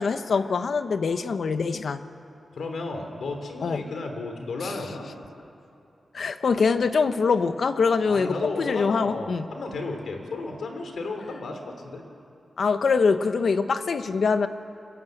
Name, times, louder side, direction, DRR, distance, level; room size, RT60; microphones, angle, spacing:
voice 1, 0.0-2.0 3.6-3.8 4.6-4.7 6.1-9.5 12.6-14.5, left 5 dB, 65° left, 10 dB, 1.0 m, -24 dB
voice 2, 2.5-5.1 8.0-12.0, left 3 dB, 85° left, 5 dB, 3.4 m, -33 dB
29.5 x 23.0 x 8.0 m, 2.7 s
wide cardioid pair, 155°, 0 cm